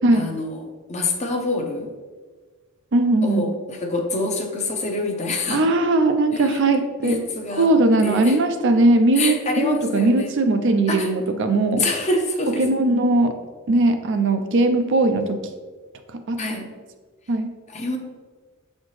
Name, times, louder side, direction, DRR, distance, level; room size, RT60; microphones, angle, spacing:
voice 1, 0.1-0.6 0.9-1.9 3.2-5.6 6.3-6.6 7.0-7.7 8.0-8.4 9.1-10.3 10.9-11.1 11.8-12.7 16.4-16.7 17.7-18.0, left 2 dB, 30° left, 2 dB, 0.7 m, -26 dB
voice 2, 2.9-3.4 5.5-7.2 7.6-11.8 12.6-13.3 13.7-15.4 16.3-16.4 17.3-17.5, right 2 dB, 55° right, 7 dB, 0.5 m, -19 dB
7.0 x 4.3 x 3.2 m, 1.4 s
head